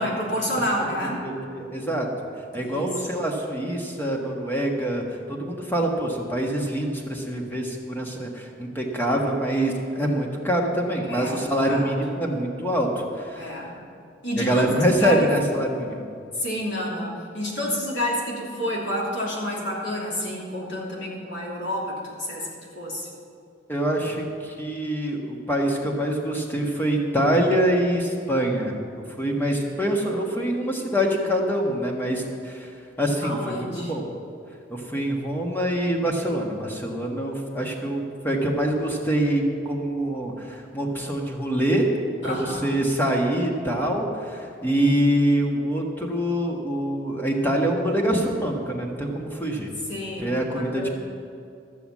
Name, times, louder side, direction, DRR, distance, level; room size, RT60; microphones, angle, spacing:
voice 1, 0.0-1.3 2.6-2.9 11.0-11.9 13.3-13.8 14.2-15.3 16.4-22.5 22.7-23.1 33.2-33.9 42.2-42.7 49.9-50.9, equal, 75° left, -4 dB, 3.1 m, -29 dB
voice 2, 1.2-2.1 2.5-5.0 5.3-13.5 14.3-16.0 23.7-28.8 29.2-32.7 33.0-34.1 34.7-41.9 42.2-49.7 50.2-50.9, right 1 dB, 10° left, 0 dB, 1.5 m, -25 dB
14.0 x 7.0 x 7.3 m, 2.5 s
head